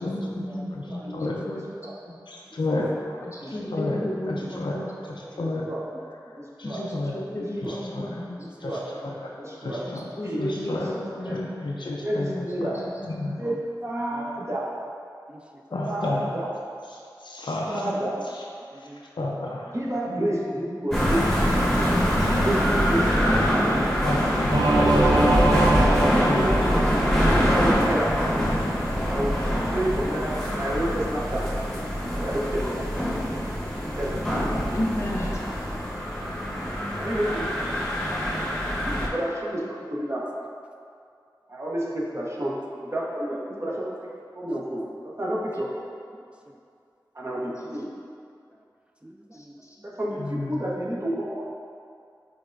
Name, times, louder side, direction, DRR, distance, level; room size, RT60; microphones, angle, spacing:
voice 1, 0.0-1.6 2.1-2.2 3.2-4.9 6.6-8.4 9.9-11.5 12.3-12.7 13.1-13.4 15.7-16.1 17.7-17.9 20.1-20.4 25.0-25.9 34.7-35.4 49.3-49.8, left 1 dB, 40° left, -3 dB, 0.5 m, -33 dB
voice 2, 1.0-1.6 3.5-3.7 5.0-5.5 5.9-6.3 9.4-10.1 13.4-13.6 14.1-14.4 15.3-15.6 18.7-19.3 35.5-35.9 36.5-36.8 42.8-42.9 47.4-47.6 49.0-49.6, right 1 dB, 15° right, 1 dB, 0.3 m, -45 dB
voice 3, 2.3-3.2 3.7-4.0 4.3-4.7 5.4-5.7 6.6-7.2 7.6-8.0 8.6-9.1 9.6-10.0 10.4-10.9 11.3-12.3 12.6-12.7 13.0-13.3 15.7-16.2 17.2-17.8 19.2-19.7 24.0-24.9 25.1-25.4 25.8-26.4 50.2-50.6, left 2 dB, 90° left, -3 dB, 0.5 m, -31 dB
voice 4, 6.4-6.8 7.6-7.8 8.6-8.9 9.4-9.8 10.2-10.4 10.7-10.8 11.2-11.4 12.0-12.8 13.4-14.7 15.8-16.5 17.7-18.1 19.7-21.2 21.6-22.0 22.4-23.2 24.8-25.1 26.2-28.1 29.1-31.5 32.1-32.8 33.8-34.2 37.0-37.5 38.8-39.6 39.9-40.2 41.5-42.5 42.8-43.9 44.3-45.8 47.1-47.9 49.8-51.5, right 1 dB, 40° right, -5 dB, 0.9 m, -30 dB
sound 1, 20.9-39.1, equal, 5° left, 1.1 m, -24 dB
Singing / Musical instrument, 24.5-27.4, right 2 dB, 70° right, 0.6 m, -22 dB
6.1 x 3.3 x 2.5 m, 2.4 s
wide cardioid pair, 40°, 8 cm